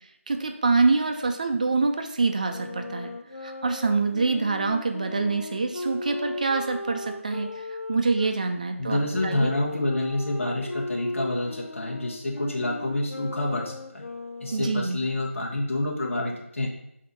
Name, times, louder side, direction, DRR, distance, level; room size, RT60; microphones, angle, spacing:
voice 1, 0.3-3.1 3.4-7.5 7.9-9.5 14.5-15.0, right 3 dB, 30° right, 5 dB, 0.5 m, -25 dB
Wind instrument woodwind instrument, 2.5-8.3 9.1-14.9, left 2 dB, 75° left, 0.8 m, -37 dB
voice 2, 8.8-14.0 14.4-16.7, left 2 dB, 60° left, -3 dB, 1.4 m, -28 dB
7.7 x 2.9 x 5.3 m, 0.78 s
figure-of-eight pair, 170°, 8 cm